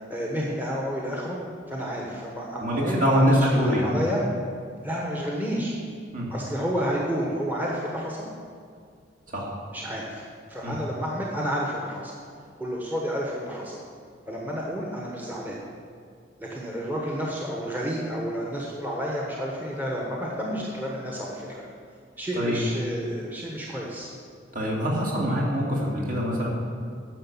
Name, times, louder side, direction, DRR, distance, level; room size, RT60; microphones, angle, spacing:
voice 1, 0.1-1.4 1.7-3.4 3.8-4.2 4.8-5.7 6.3-8.3 9.7-10.2 10.5-12.1 12.6-13.8 14.3-15.6 16.4-21.7 22.2-24.1, equal, 10° right, -3 dB, 1.2 m, -30 dB
voice 2, 2.6-3.9 6.1-6.3 9.3-9.5 10.6-10.8 22.4-22.7 24.5-26.5, equal, 45° right, -3 dB, 2.2 m, -24 dB
10.0 x 6.6 x 7.2 m, 2.1 s
head